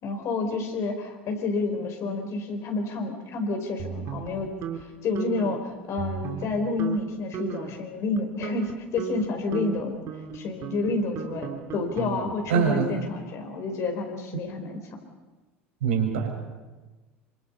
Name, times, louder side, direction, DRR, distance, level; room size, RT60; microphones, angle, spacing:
voice 1, 0.0-4.5 5.0-9.9 10.3-14.8, left 3 dB, 50° left, 5 dB, 4.8 m, -29 dB
sound 1, 3.8-4.8 5.2-5.6 6.0-6.5 6.8-7.0 7.3-7.8 8.2-12.5, right 7 dB, 50° right, 2.5 m, -35 dB
voice 2, 12.5-12.9 15.8-16.5, right 6 dB, 70° right, 1 dB, 6.2 m, -24 dB
27.5 x 25.5 x 5.6 m, 1.2 s
figure-of-eight pair, 70°, 7 cm